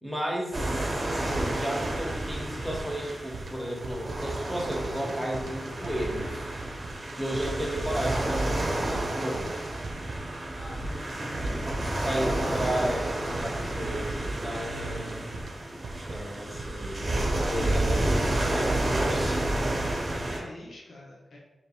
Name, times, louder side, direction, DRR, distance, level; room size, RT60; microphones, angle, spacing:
voice 1, 0.0-6.4 7.2-9.6 12.0-15.3 16.1-19.4, right 1 dB, 5° left, -2 dB, 0.8 m, -33 dB
sound 1, 0.5-20.4, right 1 dB, 35° right, 0.8 m, -30 dB
sound 2, 0.8-20.4, right 3 dB, 75° right, 0.4 m, -42 dB
voice 2, 10.6-11.7 14.4-14.8 19.9-21.4, left 1 dB, 75° left, -3 dB, 1.0 m, -46 dB
3.2 x 3.0 x 4.3 m, 1.0 s
wide cardioid pair, 160°, 0 cm